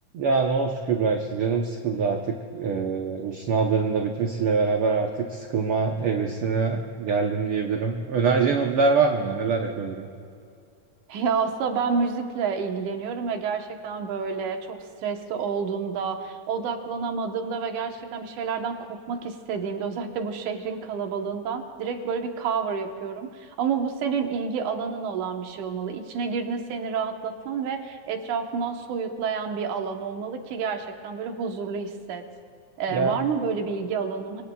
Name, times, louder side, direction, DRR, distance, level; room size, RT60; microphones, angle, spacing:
voice 1, 0.1-10.1 32.9-33.2, right 4 dB, 65° right, 2 dB, 1.5 m, -24 dB
voice 2, 11.1-32.2 32.8-34.4, right 5 dB, 85° right, 4 dB, 2.6 m, -29 dB
27.0 x 23.5 x 2.3 m, 2.3 s
omnidirectional pair, 3.4 m